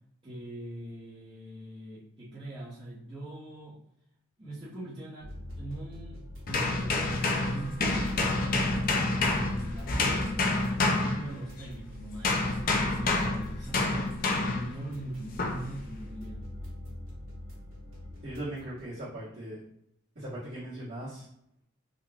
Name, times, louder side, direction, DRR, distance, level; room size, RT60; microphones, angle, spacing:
voice 1, 0.2-3.8 4.4-16.5, right 1 dB, 25° right, -10 dB, 0.7 m, -41 dB
sound 1, 5.2-18.9, left 1 dB, 70° right, 1.2 m, -44 dB
sound 2, 6.5-11.8 12.2-14.8 15.4-15.7, left 2 dB, 45° left, 0.5 m, -28 dB
voice 2, 18.2-19.6 20.1-21.3, right 1 dB, 55° right, -12 dB, 1.5 m, -39 dB
3.6 x 2.2 x 3.4 m, 0.74 s
head